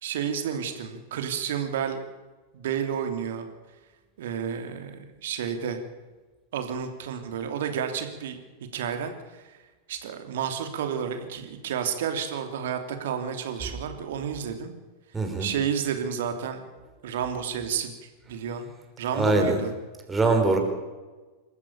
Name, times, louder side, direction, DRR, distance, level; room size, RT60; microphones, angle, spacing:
voice 1, 0.0-2.0 2.5-3.4 4.2-5.8 6.5-8.4 8.7-9.1 9.9-14.7 15.4-16.6 17.0-18.7 19.0-19.7, right 8 dB, 55° right, 7 dB, 2.9 m, -31 dB
voice 2, 15.1-15.5 19.1-19.6 20.1-20.6, right 2 dB, 10° right, 3 dB, 4.9 m, -22 dB
27.0 x 14.0 x 6.9 m, 1.3 s
figure-of-eight pair, 90°, 0 cm